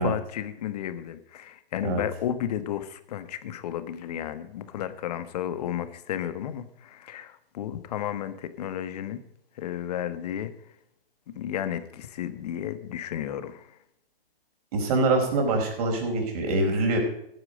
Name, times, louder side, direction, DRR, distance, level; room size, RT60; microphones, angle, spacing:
voice 1, 0.0-9.2 9.6-10.5 11.3-13.7, left 10 dB, 40° left, 12 dB, 1.5 m, -33 dB
voice 2, 14.7-17.0, right 2 dB, 40° right, 2 dB, 4.8 m, -24 dB
15.0 x 9.7 x 5.1 m, 0.76 s
hypercardioid pair, 135°, 29 cm